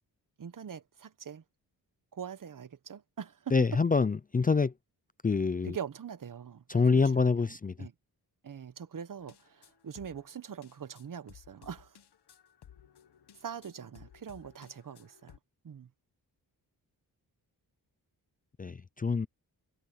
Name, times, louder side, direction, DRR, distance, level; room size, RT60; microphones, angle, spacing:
voice 1, 0.4-1.4 2.1-3.5 5.6-6.9 7.1-7.9 8.4-12.0 13.4-15.3 15.6-15.9, right 8 dB, 55° right, 1.2 m, -43 dB
voice 2, 3.5-4.7 5.2-5.8 6.7-7.9 18.6-19.3, left 4 dB, 20° left, 0.4 m, -26 dB
sound 1, 9.2-15.4, left 9 dB, 80° left, 1.5 m, -58 dB
wide cardioid pair, 95°, 39 cm